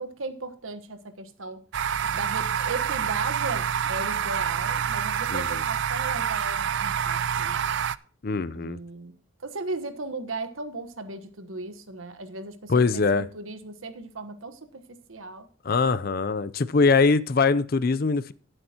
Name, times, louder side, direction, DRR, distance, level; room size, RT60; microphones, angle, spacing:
voice 1, 0.0-1.6 2.1-7.6 8.5-9.1 9.4-15.5, right 3 dB, 80° right, 1.2 m, -36 dB
sound 1, 1.7-8.0, right 8 dB, 60° right, 0.4 m, -27 dB
voice 2, 5.3-5.6 8.2-8.8 12.7-13.3 15.6-18.3, left 4 dB, 45° left, 0.5 m, -22 dB
17.5 x 7.9 x 2.9 m
head